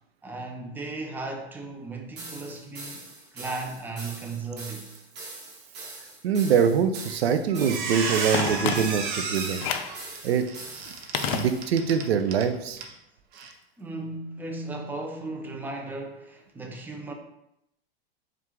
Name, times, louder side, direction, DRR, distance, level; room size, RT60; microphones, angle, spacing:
voice 1, 0.2-3.0 3.3-4.9 13.8-17.1, right 2 dB, 5° right, 0.5 m, -36 dB
sound 1, 2.2-11.7, right 2 dB, 35° right, 1.3 m, -42 dB
voice 2, 6.2-9.6 10.2-10.5 11.2-12.8, right 7 dB, 85° right, 0.5 m, -24 dB
Squeak, 7.0-7.2 7.5-12.5 12.8-12.9 13.3-13.5, right 5 dB, 55° right, 0.8 m, -32 dB
Telephone, 8.3-9.2 9.6-10.0 11.1-12.0 12.3-12.4, left 8 dB, 55° left, 0.5 m, -30 dB
4.4 x 2.5 x 3.5 m
hypercardioid pair, 105°, 30 cm